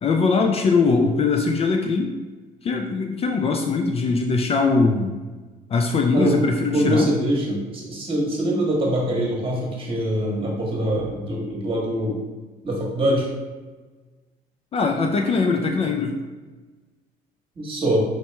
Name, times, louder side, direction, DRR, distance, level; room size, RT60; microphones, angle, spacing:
voice 1, 0.0-2.1 2.6-5.2 5.7-7.1 14.7-16.2, left 4 dB, 35° left, 2 dB, 0.4 m, -21 dB
voice 2, 6.7-12.2 12.6-13.3 17.6-18.0, right 1 dB, 30° right, -2 dB, 1.4 m, -23 dB
4.3 x 2.9 x 3.3 m, 1.3 s
cardioid pair, 110°, 17 cm